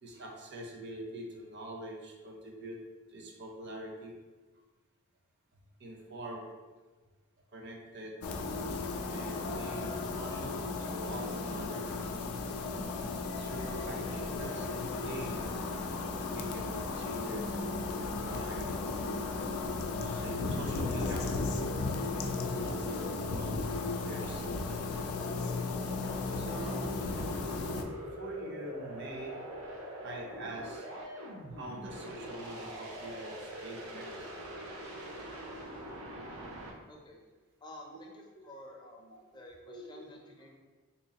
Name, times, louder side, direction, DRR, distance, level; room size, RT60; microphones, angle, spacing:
voice 1, 0.0-2.8 3.1-4.1 5.8-6.6 7.5-8.2 9.1-11.9 13.4-14.7 15.0-15.7 16.1-17.5 17.9-18.7 20.0-21.4 22.0-23.5 23.9-24.5 26.4-26.9 28.2-29.4 30.0-30.9 31.6-34.3 35.3-35.4 37.9-38.0 39.1-39.2 39.7-39.8, right 1 dB, 55° right, 0 dB, 0.6 m, -44 dB
sound 1, 8.2-27.8, left 3 dB, 90° left, 0.4 m, -35 dB
sound 2, 24.2-36.7, right 1 dB, 85° right, 0.7 m, -44 dB
voice 2, 36.9-37.2 37.6-40.6, left 1 dB, 20° left, 0 dB, 0.4 m, -51 dB
3.5 x 2.9 x 2.8 m, 1.3 s
head